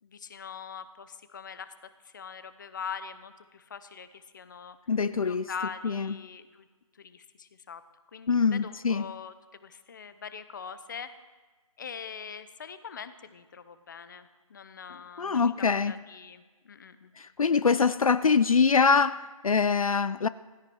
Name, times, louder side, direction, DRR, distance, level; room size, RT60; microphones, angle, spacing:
voice 1, 0.0-1.7 2.0-4.8 5.2-6.7 6.9-7.8 8.1-9.3 9.6-11.2 11.8-15.5 15.9-17.1, left 6 dB, 35° left, 0.8 m, -42 dB
voice 2, 4.9-5.5 5.8-6.1 8.3-9.0 15.2-15.9 17.2-20.3, left 5 dB, 75° left, 0.5 m, -24 dB
16.5 x 15.5 x 4.6 m
figure-of-eight pair, 155°, 18 cm